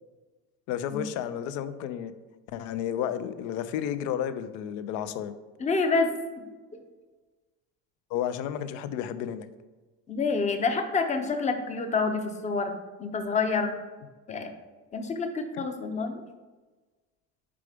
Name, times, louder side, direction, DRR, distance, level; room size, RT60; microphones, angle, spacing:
voice 1, 0.7-2.1 2.5-5.3 8.1-9.5, left 10 dB, 65° left, 12 dB, 0.6 m, -32 dB
voice 2, 5.6-6.1 6.4-6.5 10.1-12.7 13.0-13.8 14.3-14.5 14.9-16.2, left 4 dB, 20° left, 6 dB, 0.7 m, -27 dB
4.9 x 4.9 x 5.0 m, 1.3 s
cardioid pair, 125°, 33 cm